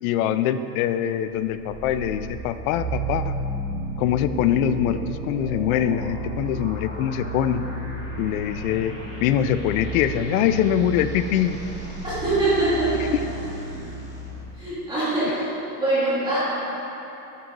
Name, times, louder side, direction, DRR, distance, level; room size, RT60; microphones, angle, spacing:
voice 1, 0.0-3.4 4.0-7.6 8.2-8.9 9.2-11.6, left 10 dB, 70° left, 11 dB, 0.5 m, -23 dB
sound 1, 1.2-14.4, right 2 dB, 25° left, 1.6 m, -33 dB
voice 2, 12.0-13.1 14.5-15.4 15.7-16.4, right 2 dB, 10° right, -12 dB, 1.8 m, -23 dB
9.2 x 6.1 x 3.8 m, 3.0 s
supercardioid pair, 170°, 44 cm